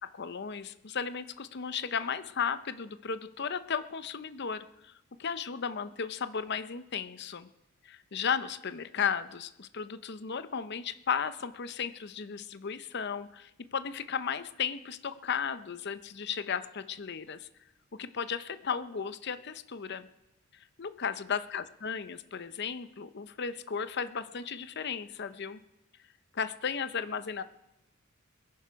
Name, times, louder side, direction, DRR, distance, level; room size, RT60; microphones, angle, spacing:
voice 1, 0.0-4.9 5.2-7.5 7.8-17.5 18.0-20.1 20.5-25.6 26.3-27.4, left 6 dB, 50° left, 12 dB, 0.7 m, -35 dB
21.5 x 11.0 x 4.7 m, 0.92 s
head